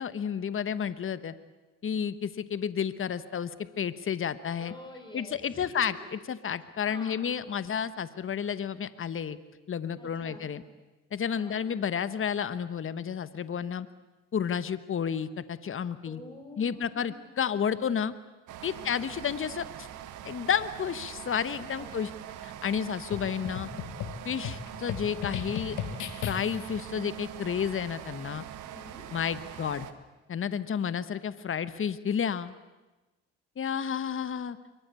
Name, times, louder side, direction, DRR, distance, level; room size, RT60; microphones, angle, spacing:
voice 1, 0.0-1.3 1.8-3.5 3.8-4.7 5.1-9.4 9.7-10.6 11.1-13.9 14.3-16.2 16.6-18.1 18.6-19.9 20.2-22.1 22.4-23.7 24.2-25.8 26.2-28.4 29.1-29.9 30.3-32.5 33.6-34.6, left 7 dB, 45° left, 14 dB, 1.3 m, -31 dB
voice 2, 4.6-5.9 6.6-7.3 10.0-10.5 11.3-11.6 16.0-17.2 18.7-19.1 21.8-22.2 22.8-22.9 28.6-29.1, left 1 dB, 15° left, 4 dB, 7.4 m, -48 dB
sound 1, 18.5-29.9, right 11 dB, 90° right, 1.8 m, -43 dB
sound 2, 23.1-26.8, left 8 dB, 75° left, 2.1 m, -36 dB
25.0 x 24.0 x 8.4 m, 1.1 s
cardioid pair, 90°, 30 cm